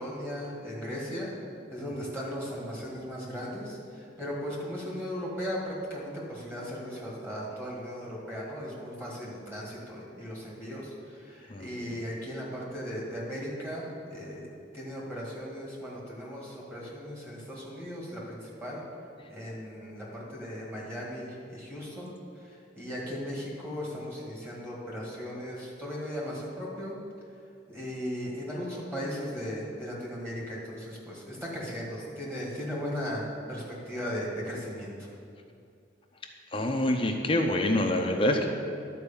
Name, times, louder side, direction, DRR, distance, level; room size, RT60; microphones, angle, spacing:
voice 1, 0.0-1.3 1.7-14.5 14.7-18.8 19.3-26.9 27.7-34.9, equal, 15° right, -5 dB, 1.9 m, -37 dB
voice 2, 36.5-38.5, left 1 dB, 30° left, 3 dB, 0.7 m, -26 dB
11.5 x 4.7 x 7.1 m, 2.4 s
head